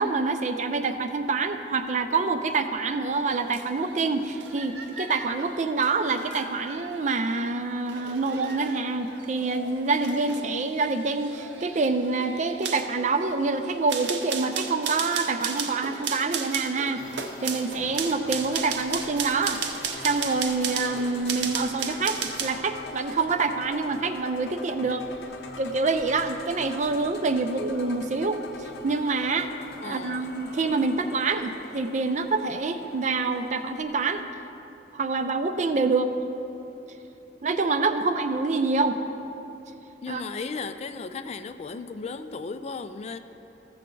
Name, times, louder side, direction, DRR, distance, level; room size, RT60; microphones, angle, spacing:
voice 1, 0.0-17.0 17.4-19.6 20.0-25.0 25.6-29.5 29.8-34.3 34.9-36.1 37.4-39.0 40.1-40.2, right 3 dB, 40° right, 8 dB, 0.5 m, -26 dB
sound 1, 3.3-22.7 23.0-23.3, right 6 dB, 80° right, 0.7 m, -35 dB
sound 2, 4.6-6.8 8.3-9.3 10.2-10.3 11.0-11.1 11.3-11.4 13.3-13.6 16.4-16.5 17.5-17.6 19.1-19.2 19.4-19.5 19.8-19.9 20.0-20.1 20.3-20.4 20.6-20.7 20.9-21.0, right 2 dB, 60° right, 1.0 m, -43 dB
sound 3, 17.0-34.2, left 3 dB, 65° left, 0.7 m, -43 dB
voice 2, 29.8-30.3 40.0-43.2, left 4 dB, 35° left, 10 dB, 0.3 m, -35 dB
14.5 x 6.9 x 3.8 m, 3.0 s
head